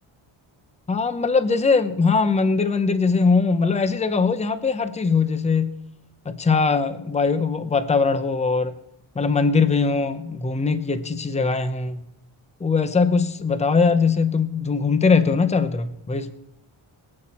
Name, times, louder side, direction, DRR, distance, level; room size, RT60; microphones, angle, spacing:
voice 1, 0.9-5.7 6.2-8.7 9.1-12.0 12.6-16.4, left 4 dB, 15° left, 12 dB, 0.7 m, -21 dB
22.0 x 8.7 x 4.3 m, 0.81 s
wide cardioid pair, 135°, 49 cm